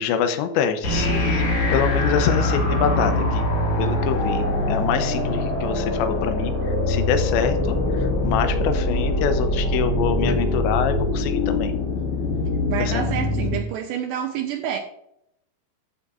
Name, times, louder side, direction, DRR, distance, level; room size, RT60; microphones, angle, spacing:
voice 1, 0.0-3.4 3.8-11.7 12.8-13.0, left 7 dB, 75° left, 8 dB, 3.0 m, -25 dB
sound 1, 0.8-13.6, left 1 dB, 40° left, 2.6 m, -23 dB
voice 2, 12.7-14.8, right 9 dB, 80° right, 4 dB, 2.6 m, -28 dB
14.0 x 7.0 x 2.5 m, 0.77 s
omnidirectional pair, 5.4 m